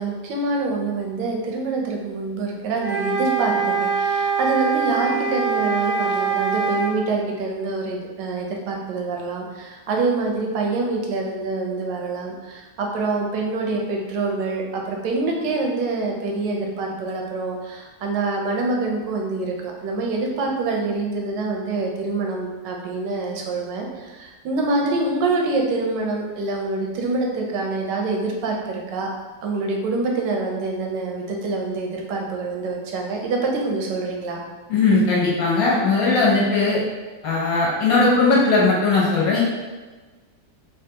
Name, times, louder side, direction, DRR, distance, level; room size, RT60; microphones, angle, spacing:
voice 1, 0.0-29.1 29.4-34.4, right 3 dB, 85° right, 0 dB, 1.3 m, -26 dB
sound 1, 2.8-7.0, right 5 dB, 60° right, 0.7 m, -23 dB
voice 2, 34.7-36.8 37.2-39.4, left 3 dB, 65° left, -5 dB, 1.1 m, -18 dB
3.5 x 2.3 x 2.8 m, 1.3 s
omnidirectional pair, 1.9 m